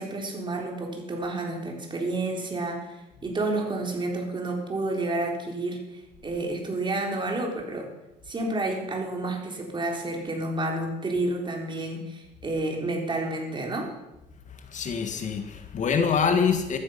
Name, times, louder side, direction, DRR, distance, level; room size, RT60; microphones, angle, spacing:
voice 1, 0.0-5.8 6.2-7.9 8.3-13.9, right 2 dB, 30° right, 2 dB, 3.9 m, -30 dB
voice 2, 14.7-16.8, left 6 dB, 45° left, 7 dB, 1.7 m, -25 dB
14.0 x 14.0 x 5.8 m, 0.95 s
cardioid pair, 110°, 17 cm